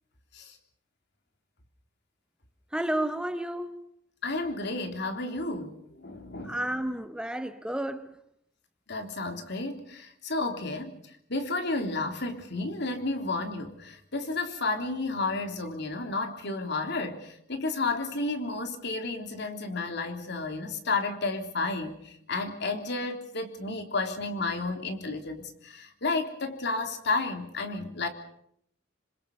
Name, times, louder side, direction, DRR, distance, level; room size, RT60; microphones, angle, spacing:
voice 1, 2.7-3.9 6.4-8.2, right 1 dB, 5° right, 0.9 m, -31 dB
voice 2, 4.2-6.6 8.9-11.0 11.3-22.0 22.3-28.1, left 3 dB, 60° left, 3.4 m, -32 dB
27.0 x 26.0 x 5.5 m
head